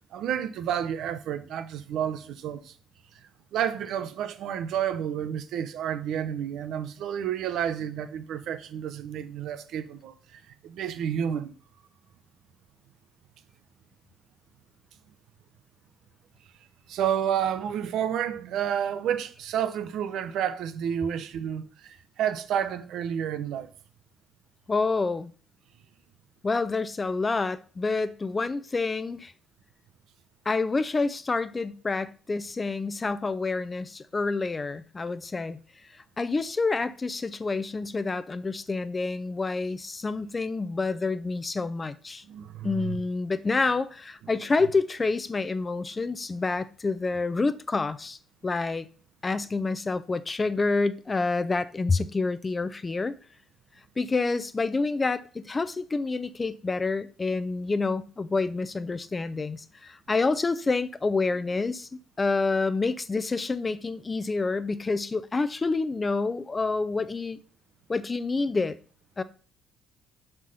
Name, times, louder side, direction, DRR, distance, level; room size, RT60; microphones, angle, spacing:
voice 1, 0.1-2.7 3.5-11.5 16.9-23.7 42.3-43.0, right 9 dB, 60° right, 0.6 m, -30 dB
voice 2, 24.7-25.3 26.4-29.3 30.5-35.6 36.2-42.2 42.6-48.2 48.4-48.9 49.2-53.1 54.0-61.9 62.2-67.4 67.9-68.8 69.2-69.3, left 3 dB, 30° left, 0.6 m, -28 dB
6.0 x 4.4 x 5.5 m
figure-of-eight pair, 45°, 0 cm